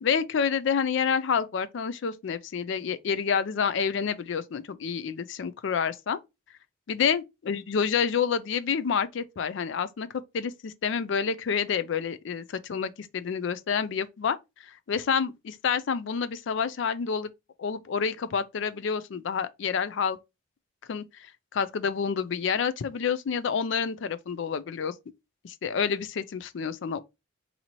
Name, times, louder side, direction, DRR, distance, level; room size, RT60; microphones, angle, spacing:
voice 1, 0.0-6.2 6.9-10.1 10.3-14.4 14.6-17.3 17.6-20.2 20.9-24.9 25.4-27.0, left 6 dB, 60° left, 0.4 m, -28 dB
2.9 x 2.7 x 4.0 m
head